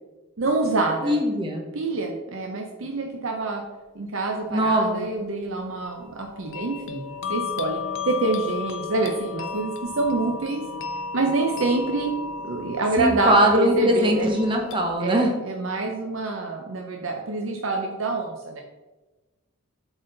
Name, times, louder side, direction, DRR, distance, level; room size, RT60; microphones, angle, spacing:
voice 1, 0.4-1.2 1.7-3.6 4.0-10.6 11.1-12.1 12.4-14.3 15.0-18.6, right 2 dB, 65° right, 2 dB, 0.6 m, -26 dB
voice 2, 1.0-1.7 4.5-5.1 13.0-15.3, right 1 dB, 25° right, 2 dB, 0.9 m, -21 dB
sound 1, 5.8-14.9, left 5 dB, 60° left, 0.6 m, -34 dB
7.7 x 4.0 x 3.9 m, 1.2 s
head